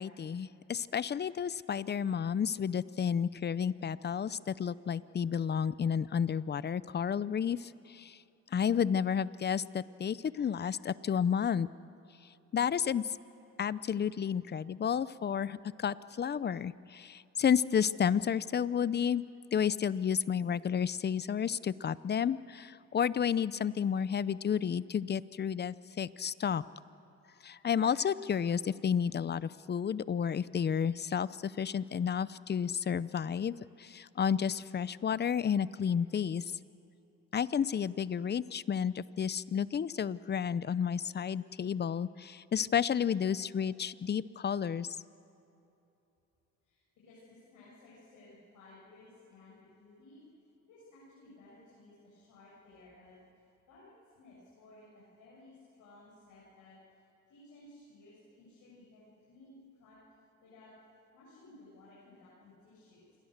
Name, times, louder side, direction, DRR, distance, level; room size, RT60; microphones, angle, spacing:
voice 1, 0.0-8.2 8.5-11.7 12.5-13.1 13.6-19.2 19.5-26.6 27.4-36.4 37.3-44.9, left 7 dB, 35° left, 18 dB, 0.6 m, -31 dB
voice 2, 46.6-50.2 50.6-53.2 53.7-56.8 57.3-60.0 60.4-60.7 61.1-63.2, left 2 dB, 85° left, -7 dB, 7.5 m, -57 dB
27.5 x 22.0 x 6.6 m, 2.8 s
cardioid pair, 90°, 30 cm